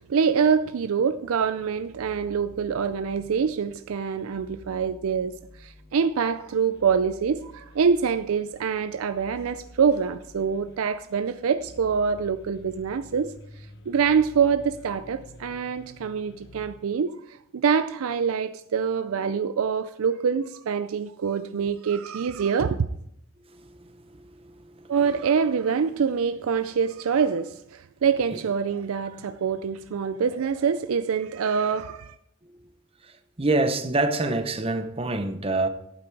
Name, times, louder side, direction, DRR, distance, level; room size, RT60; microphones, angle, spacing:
voice 1, 0.0-13.3 13.9-22.8 24.9-32.2, right 6 dB, 80° right, 0.4 m, -25 dB
sound 1, 1.4-16.8, left 1 dB, 50° left, 0.9 m, -50 dB
voice 2, 23.5-24.9 28.3-28.4 32.4-32.6 33.0-35.7, right 2 dB, 25° right, 0.8 m, -27 dB
12.0 x 8.9 x 4.7 m
head